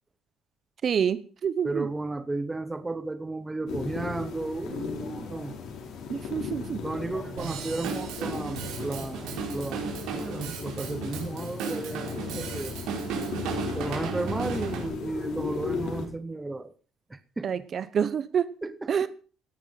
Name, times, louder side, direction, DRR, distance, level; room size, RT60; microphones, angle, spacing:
voice 1, 0.8-1.9 6.1-6.8 17.4-18.5 18.9-19.1, right 7 dB, 40° right, 0.9 m, -27 dB
voice 2, 1.6-5.5 6.8-12.8 13.7-16.7 17.1-17.5 18.6-18.9, right 2 dB, 10° right, 0.9 m, -34 dB
sound 1, 3.7-16.1, left 5 dB, 65° left, 4.7 m, -37 dB
Drum kit / Drum, 7.4-14.9, right 5 dB, 80° right, 4.9 m, -35 dB
17.0 x 10.0 x 5.7 m
cardioid pair, 145°, 0 cm